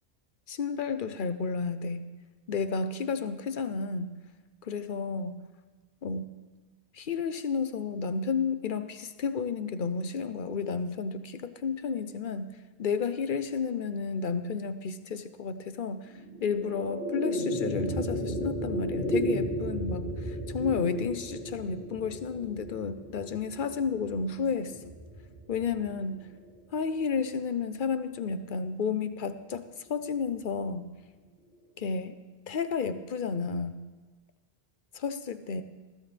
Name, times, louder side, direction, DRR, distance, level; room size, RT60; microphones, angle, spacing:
voice 1, 0.5-2.1 2.5-4.1 4.6-5.4 6.0-6.2 6.9-16.1 16.4-24.8 25.5-26.3 26.7-30.9 31.8-32.2 32.5-33.8 34.9-35.6, left 5 dB, 55° left, 10 dB, 0.9 m, -32 dB
sound 1, 16.1-26.6, equal, 75° right, 4.1 m, -34 dB
20.5 x 15.0 x 3.4 m, 1.3 s
omnidirectional pair, 1.1 m